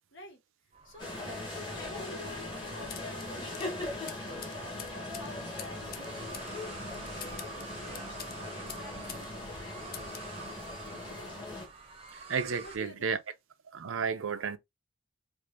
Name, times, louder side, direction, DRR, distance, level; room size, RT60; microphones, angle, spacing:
sound 1, 0.7-12.8, right 4 dB, 30° right, 0.8 m, -49 dB
sound 2, 1.0-11.7, left 2 dB, 20° left, 1.5 m, -40 dB
voice 1, 1.7-4.6 4.9-6.6 7.1-10.0 12.6-13.2, left 1 dB, 65° left, 1.7 m, -51 dB
sound 3, 2.9-9.3 9.5-10.3, left 9 dB, 45° left, 0.5 m, -47 dB
voice 2, 12.1-13.2 13.7-14.6, right 6 dB, 85° right, 0.6 m, -32 dB
4.6 x 2.6 x 2.5 m
head